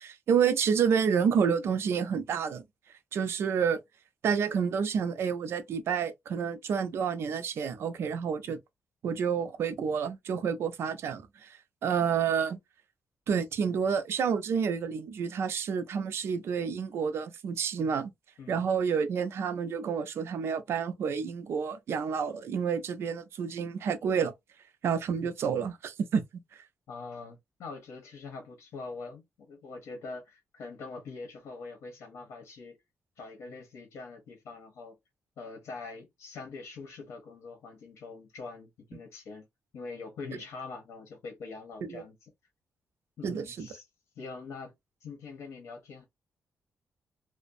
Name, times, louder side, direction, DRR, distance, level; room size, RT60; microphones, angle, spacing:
voice 1, 0.0-2.6 3.1-3.8 4.2-8.6 9.0-11.6 11.8-12.6 13.3-18.1 18.5-24.3 24.8-26.2 41.9-42.0 43.2-43.7, right 6 dB, 65° right, 0.4 m, -29 dB
voice 2, 26.9-32.8 33.2-35.0 35.4-39.5 39.7-42.3 43.2-43.8 44.2-44.7 45.0-46.1, left 4 dB, 80° left, 0.8 m, -43 dB
2.5 x 2.1 x 2.4 m
wide cardioid pair, 155°, 5 cm